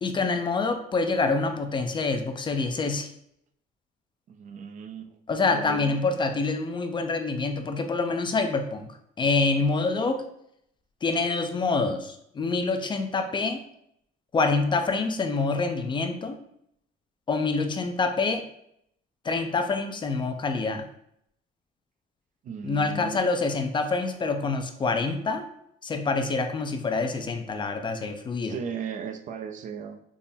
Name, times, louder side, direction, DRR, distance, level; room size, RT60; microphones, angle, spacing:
voice 1, 0.0-3.1 5.3-10.2 11.0-13.6 14.3-16.4 17.3-18.5 19.2-20.9 22.6-25.4 25.8-28.6, left 3 dB, 30° left, 6 dB, 0.4 m, -26 dB
voice 2, 4.3-5.2 5.5-6.0 22.4-23.2 28.4-30.0, right 7 dB, 50° right, 7 dB, 0.4 m, -36 dB
3.6 x 2.1 x 4.1 m, 0.73 s
cardioid pair, 110°, 17 cm